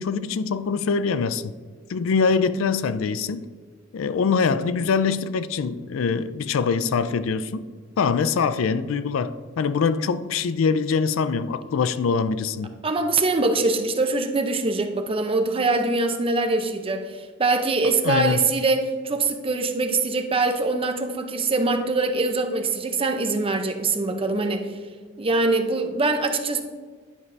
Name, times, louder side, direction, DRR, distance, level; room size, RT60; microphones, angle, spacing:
voice 1, 0.0-1.5 1.9-3.5 3.9-7.6 8.0-12.7 18.0-18.4, left 5 dB, 80° left, 0.4 m, -23 dB
voice 2, 12.8-24.7 25.2-26.6, right 3 dB, 30° right, 0.6 m, -23 dB
10.5 x 5.3 x 3.3 m
head